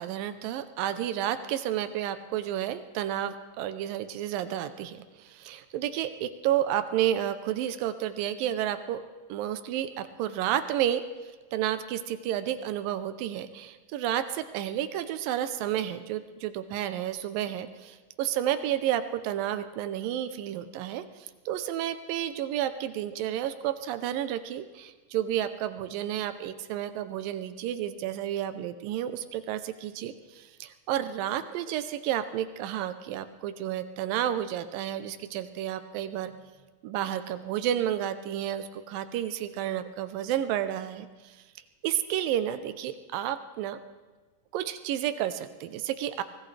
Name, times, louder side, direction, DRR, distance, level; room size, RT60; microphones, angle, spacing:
voice 1, 0.0-9.0 9.3-11.0 11.5-36.3 36.8-41.4 41.8-43.8 44.5-46.2, right 11 dB, 90° right, 10 dB, 2.5 m, -31 dB
24.5 x 17.5 x 3.3 m, 1.3 s
omnidirectional pair, 3.9 m